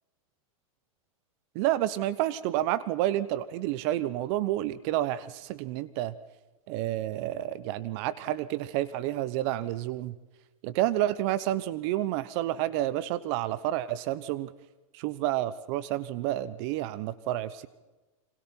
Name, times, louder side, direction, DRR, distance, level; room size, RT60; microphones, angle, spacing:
voice 1, 1.5-6.1 6.7-10.1 10.6-14.5 14.9-17.7, right 14 dB, 55° right, 16 dB, 0.9 m, -29 dB
29.5 x 25.0 x 4.5 m, 1.1 s
hypercardioid pair, 120°, 17 cm